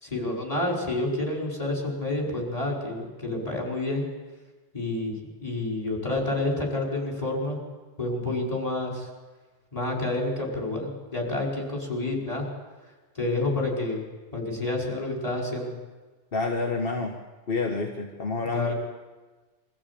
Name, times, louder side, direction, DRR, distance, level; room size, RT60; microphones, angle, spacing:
voice 1, 0.0-4.1 4.7-5.2 5.4-7.6 8.0-9.1 9.7-12.5 13.2-14.0 14.3-15.7 18.4-18.7, left 2 dB, 30° left, -2 dB, 5.5 m, -29 dB
voice 2, 16.3-17.2 17.5-18.7, left 3 dB, 50° left, 2 dB, 1.8 m, -28 dB
23.5 x 15.0 x 8.6 m, 1.3 s
omnidirectional pair, 1.2 m